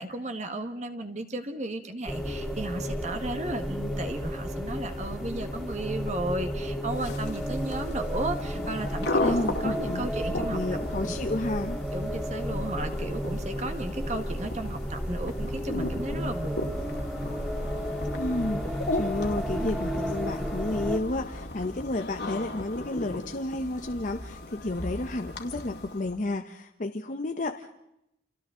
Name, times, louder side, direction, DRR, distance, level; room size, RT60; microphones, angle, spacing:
voice 1, 0.0-9.4 9.6-10.6 11.0-11.2 11.9-16.8, right 2 dB, 40° right, 7 dB, 1.5 m, -34 dB
sound 1, 2.1-21.0, equal, ahead, 2.7 m, -32 dB
sound 2, 6.9-26.2, left 2 dB, 65° left, 2.3 m, -36 dB
voice 2, 9.2-10.1 10.5-11.8 18.2-27.8, left 2 dB, 45° left, 6 dB, 0.8 m, -31 dB
29.0 x 27.5 x 3.8 m, 0.83 s
head